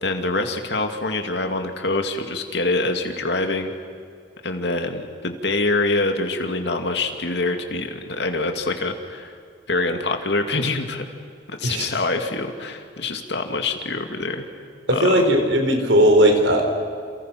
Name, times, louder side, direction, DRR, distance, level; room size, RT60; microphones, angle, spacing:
voice 1, 0.0-3.7 4.4-9.3 9.7-11.0 11.5-14.4 14.9-15.4, left 2 dB, 65° left, 5 dB, 2.5 m, -25 dB
voice 2, 14.9-16.7, right 1 dB, 80° right, 4 dB, 4.7 m, -17 dB
29.5 x 28.5 x 6.1 m, 2.3 s
head